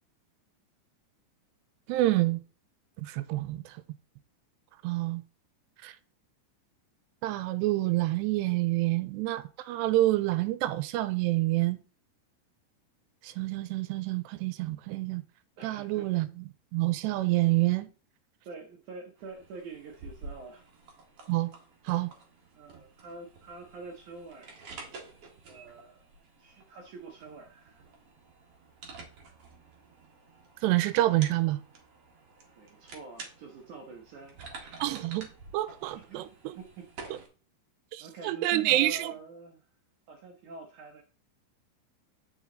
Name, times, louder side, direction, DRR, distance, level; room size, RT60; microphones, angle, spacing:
voice 1, 1.9-2.4 3.0-3.7 4.8-5.2 5.8-5.9 7.2-11.8 13.2-15.2 15.6-17.9 21.3-21.5 21.9-22.1 30.6-31.6 34.8-36.6 37.1-37.2 37.9-39.1, right 17 dB, 90° right, 2.8 m, -28 dB
voice 2, 15.6-16.1 18.5-20.7 22.5-24.6 25.5-26.0 26.4-27.9 32.6-34.8 36.1-36.9 38.0-39.7 40.1-41.0, right 4 dB, 75° right, 1.8 m, -46 dB
sound 1, 19.2-37.3, right 4 dB, 50° right, 2.0 m, -50 dB
9.5 x 6.3 x 3.8 m
omnidirectional pair, 4.9 m